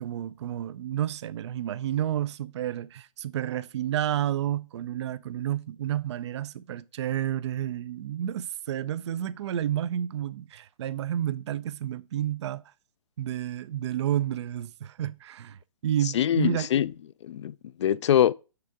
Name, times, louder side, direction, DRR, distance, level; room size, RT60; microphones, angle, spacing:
voice 1, 0.0-12.7 13.2-16.7, right 11 dB, 55° right, 0.4 m, -30 dB
voice 2, 16.1-16.9 17.2-18.3, left 10 dB, 55° left, 0.4 m, -23 dB
7.0 x 6.7 x 3.6 m
figure-of-eight pair, 130°, 18 cm